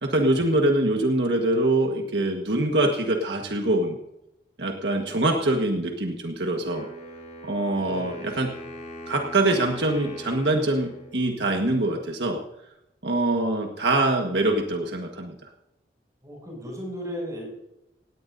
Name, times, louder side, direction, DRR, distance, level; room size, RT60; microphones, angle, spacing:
voice 1, 0.0-4.0 4.6-6.9 7.4-8.5 9.1-12.4 13.0-15.3, right 2 dB, 70° right, 2 dB, 1.6 m, -24 dB
voice 2, 4.8-5.4 7.8-8.2 13.3-13.7 16.2-17.5, equal, 20° right, -1 dB, 7.0 m, -37 dB
Wind instrument woodwind instrument, 6.7-11.7, equal, 45° left, 4.1 m, -41 dB
17.5 x 17.5 x 2.7 m, 0.85 s
head